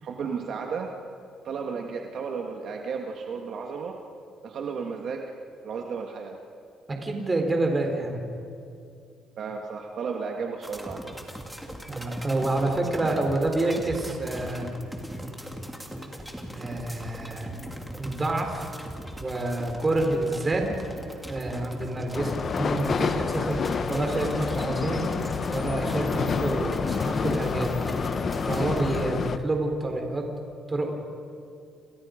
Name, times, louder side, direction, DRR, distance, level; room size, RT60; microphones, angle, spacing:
voice 1, 0.0-0.9 1.4-4.0 4.4-5.3 5.6-6.4 9.4-11.2, right 5 dB, 55° right, 2 dB, 1.9 m, -33 dB
voice 2, 6.9-8.2 11.9-14.7 16.6-17.5 18.0-18.7 19.2-20.7 21.3-25.0 25.5-27.7 28.5-30.2 30.7-30.9, right 2 dB, 20° right, 3 dB, 4.1 m, -28 dB
sound 1, 10.6-29.1, equal, ahead, 2.6 m, -40 dB
sound 2, 22.1-29.4, left 5 dB, 40° left, 1.0 m, -28 dB
29.5 x 29.0 x 5.2 m, 2.4 s
cardioid pair, 135°, 0 cm